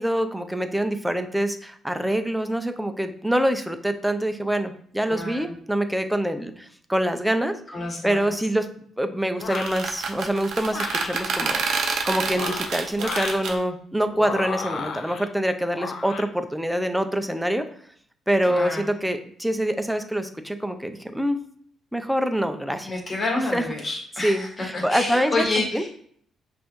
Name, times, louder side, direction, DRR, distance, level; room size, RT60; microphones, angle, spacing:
voice 1, 0.0-7.5 8.0-8.7 9.0-11.6 12.0-17.7 18.3-21.4 21.9-23.0 23.5-23.6 24.2-25.5 25.7-25.8, right 1 dB, 5° right, 8 dB, 0.5 m, -25 dB
voice 2, 5.0-5.5 7.7-8.4 18.5-18.9 22.8-25.9, left 2 dB, 35° left, -2 dB, 1.7 m, -28 dB
sound 1, 9.4-9.8 10.7-11.2 12.2-13.4 14.1-15.3 15.7-16.3, left 5 dB, 60° left, 0.5 m, -33 dB
sound 2, 9.4-13.6, right 5 dB, 70° right, 0.6 m, -28 dB
5.3 x 2.6 x 3.0 m, 0.62 s
cardioid pair, 90°, 0 cm